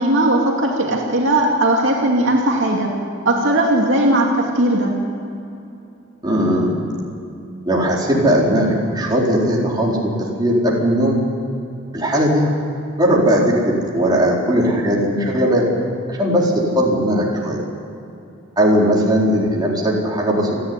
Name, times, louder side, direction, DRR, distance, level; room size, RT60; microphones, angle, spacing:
voice 1, 0.0-2.9 3.2-4.9, right 1 dB, 65° right, -1 dB, 2.7 m, -17 dB
voice 2, 6.2-6.7 7.7-10.1 10.4-11.2 11.9-12.5 13.0-15.7 16.1-17.6 18.6-20.5, equal, 20° right, -4 dB, 4.3 m, -18 dB
29.0 x 11.5 x 9.9 m, 2.7 s
head